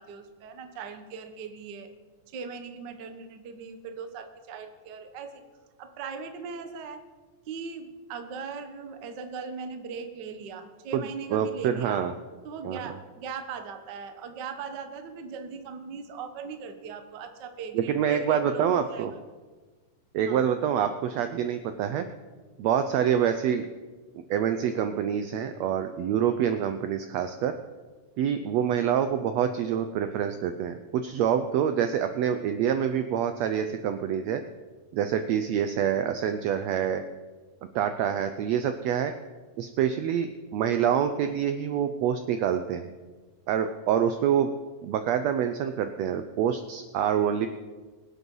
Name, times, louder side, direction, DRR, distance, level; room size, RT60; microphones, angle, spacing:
voice 1, 0.0-1.9 2.3-5.4 5.8-7.0 7.5-12.0 12.4-19.2 20.3-20.5, right 5 dB, 65° right, 7 dB, 1.0 m, -39 dB
voice 2, 11.3-12.1 12.6-12.8 17.7-19.1 20.1-22.1 22.6-23.7 24.3-27.5 28.2-34.4 34.9-37.0 37.7-39.1 39.6-42.9 43.5-44.5 44.8-47.5, right 9 dB, 90° right, 9 dB, 1.5 m, -26 dB
23.5 x 8.1 x 5.5 m, 1.3 s
omnidirectional pair, 3.8 m